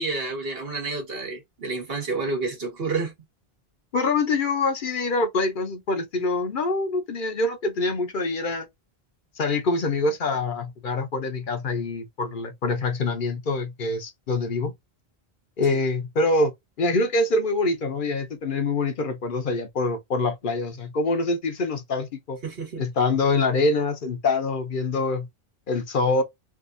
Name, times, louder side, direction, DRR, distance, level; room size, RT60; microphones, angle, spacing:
voice 1, 0.0-3.1 15.7-15.8 22.4-22.8, right 3 dB, 70° right, 1.6 m, -29 dB
voice 2, 3.9-8.7 9.4-14.7 15.6-16.5 16.8-22.4 22.8-25.3 25.7-26.2, left 3 dB, 60° left, 0.8 m, -25 dB
3.4 x 2.5 x 2.5 m
omnidirectional pair, 1.0 m